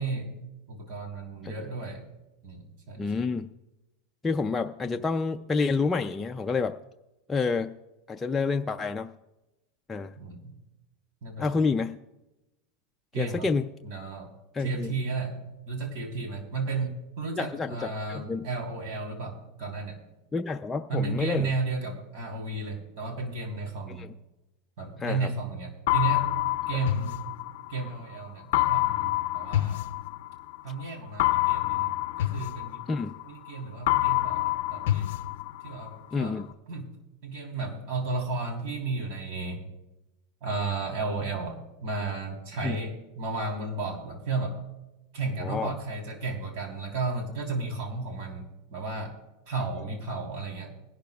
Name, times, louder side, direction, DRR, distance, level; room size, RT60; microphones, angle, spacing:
voice 1, 0.0-2.0 2.4-3.0 10.2-10.5 11.2-11.6 13.1-13.5 13.8-14.3 14.6-20.0 20.9-24.1 24.8-26.4 26.7-27.2 27.7-29.8 30.6-32.8 33.2-35.2 35.6-36.4 36.7-37.0 37.2-39.6 40.4-44.6 45.1-48.5 48.7-49.2 49.5-50.7, right 3 dB, 60° right, 3 dB, 3.4 m, -33 dB
voice 2, 3.0-3.5 4.2-6.7 7.3-7.7 8.1-9.1 9.9-10.1 11.4-12.0 13.2-13.7 14.5-14.9 17.4-18.5 20.3-21.5 23.9-24.1 25.0-25.3 32.9-33.1 36.1-36.5 42.6-42.8 45.4-45.7, left 4 dB, 10° left, 4 dB, 0.4 m, -28 dB
sound 1, 25.9-27.9 28.5-30.6 31.2-33.5 33.9-35.9, left 16 dB, 70° left, 0.5 m, -27 dB
21.5 x 12.0 x 2.3 m, 0.98 s
supercardioid pair, 150°, 0 cm